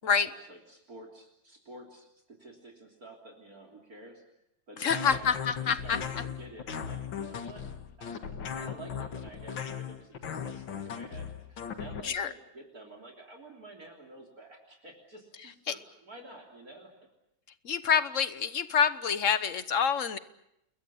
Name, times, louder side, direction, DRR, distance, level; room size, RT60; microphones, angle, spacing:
voice 1, 0.0-4.2 4.7-5.3 5.6-7.7 8.0-16.9, right 2 dB, 45° right, 4 dB, 3.8 m, -50 dB
voice 2, 4.8-6.0 12.0-12.3 15.7-15.8 17.6-20.2, left 7 dB, 45° left, 13 dB, 1.2 m, -27 dB
sound 1, 4.9-12.0, left 7 dB, 75° left, 2.4 m, -37 dB
30.0 x 21.5 x 7.1 m, 0.79 s
omnidirectional pair, 2.1 m